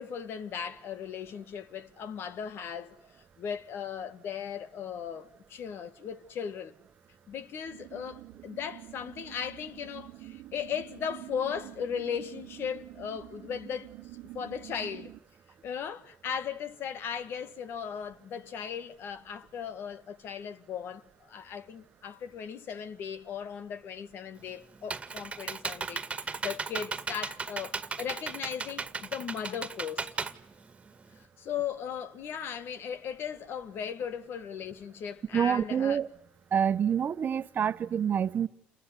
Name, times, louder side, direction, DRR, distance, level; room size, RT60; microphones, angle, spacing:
voice 1, 0.0-3.0 3.4-6.7 7.3-13.9 14.3-15.1 15.6-21.0 21.3-30.1 31.4-36.0, left 7 dB, 60° left, 1.9 m, -37 dB
sound 1, 7.7-15.2, right 17 dB, 75° right, 1.2 m, -47 dB
Computer keyboard, 24.4-31.2, right 4 dB, 25° right, 2.0 m, -36 dB
voice 2, 35.3-36.1 36.5-38.5, right 8 dB, 45° right, 1.2 m, -27 dB
29.0 x 20.5 x 9.8 m
supercardioid pair, 80°, 4 cm